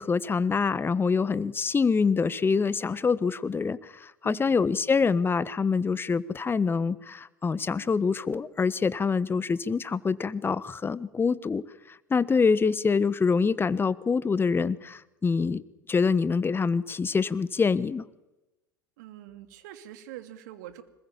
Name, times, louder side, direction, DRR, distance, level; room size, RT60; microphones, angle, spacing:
voice 1, 0.0-15.6 15.9-18.0, left 5 dB, 20° left, 17 dB, 1.3 m, -25 dB
voice 2, 19.0-20.8, right 12 dB, 65° right, 9 dB, 2.8 m, -44 dB
26.5 x 20.5 x 7.5 m, 0.97 s
figure-of-eight pair, 70°, 10 cm